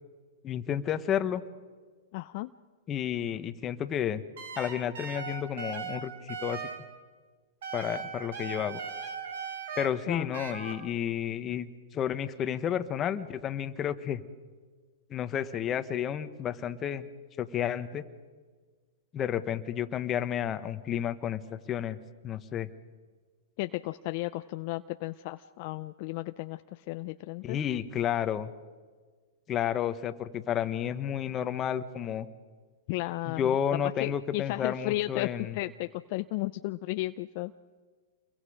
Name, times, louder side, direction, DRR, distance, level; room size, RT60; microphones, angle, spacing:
voice 1, 0.4-1.4 2.9-4.2 4.6-6.6 7.7-8.8 9.8-14.2 15.1-17.1 17.4-18.0 19.1-22.0 22.2-22.7 27.4-28.5 29.5-32.3 33.3-35.6, left 9 dB, 25° left, 10 dB, 1.4 m, -31 dB
voice 2, 2.1-2.5 10.1-10.3 23.6-27.6 32.9-33.5 34.0-37.5, left 19 dB, 50° left, 10 dB, 0.6 m, -34 dB
sound 1, 4.4-6.9 7.6-9.9 10.3-10.7, right 6 dB, 70° right, 3.9 m, -38 dB
29.0 x 22.5 x 5.1 m, 1.5 s
hypercardioid pair, 130°, 0 cm